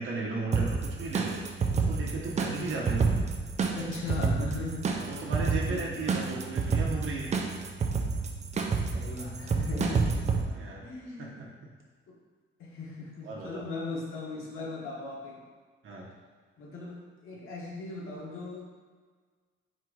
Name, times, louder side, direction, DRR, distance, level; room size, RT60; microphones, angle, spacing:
voice 1, 0.0-1.4 1.7-3.2 4.9-7.3 10.4-10.9 11.2-11.5 13.2-13.6 15.8-16.1, right 3 dB, 70° right, -2 dB, 1.0 m, -35 dB
sound 1, 0.5-10.4, right 4 dB, 35° right, 0.4 m, -29 dB
voice 2, 3.7-4.9 5.2-5.3 5.7-6.0 8.9-10.2 10.8-11.5 12.1-12.2 12.6-15.4 16.6-18.7, left 3 dB, 85° left, -3 dB, 1.1 m, -38 dB
4.3 x 2.5 x 4.6 m, 1.5 s
cardioid pair, 125°, 21 cm